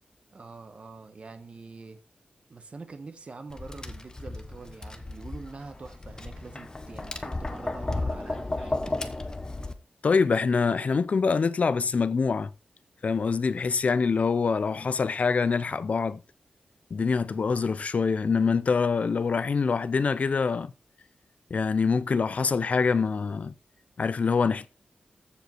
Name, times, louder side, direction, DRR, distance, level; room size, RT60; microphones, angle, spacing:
voice 1, 0.3-2.0 2.5-8.8, right 4 dB, 40° right, 1.4 m, -44 dB
Tap, 3.5-9.7, left 2 dB, 25° left, 1.0 m, -34 dB
voice 2, 10.0-12.5 13.0-16.2 16.9-20.7 21.5-23.5 24.0-24.7, left 5 dB, 50° left, 0.6 m, -25 dB
14.5 x 5.0 x 4.5 m
wide cardioid pair, 140°, 3 cm